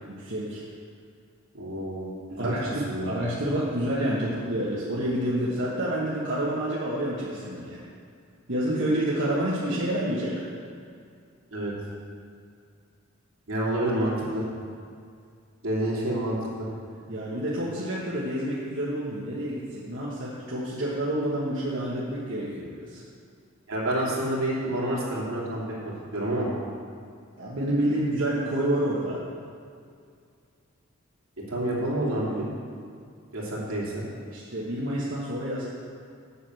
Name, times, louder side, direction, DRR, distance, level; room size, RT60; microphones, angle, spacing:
voice 1, 0.1-0.6 2.4-7.8 8.5-10.3 17.1-23.0 27.4-29.2 34.3-35.7, right 1 dB, 60° right, -8 dB, 1.5 m, -28 dB
voice 2, 1.5-3.1 11.5-11.7 13.5-14.4 15.6-16.7 23.7-26.5 31.4-32.5 33.3-34.0, right 1 dB, 80° right, -6 dB, 2.9 m, -28 dB
8.4 x 6.5 x 7.7 m, 2.3 s
head